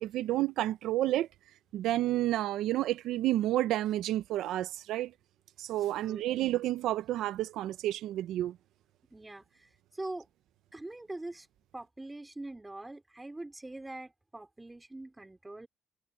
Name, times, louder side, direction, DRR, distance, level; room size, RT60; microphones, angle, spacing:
voice 1, 0.0-1.3 1.7-5.1 5.6-8.6, right 14 dB, 85° right, 0.5 m, -30 dB
voice 2, 5.9-6.2 9.1-9.7 10.0-10.3 10.7-11.5 11.7-15.7, right 2 dB, 15° right, 4.3 m, -43 dB
cardioid pair, 90°, 0 cm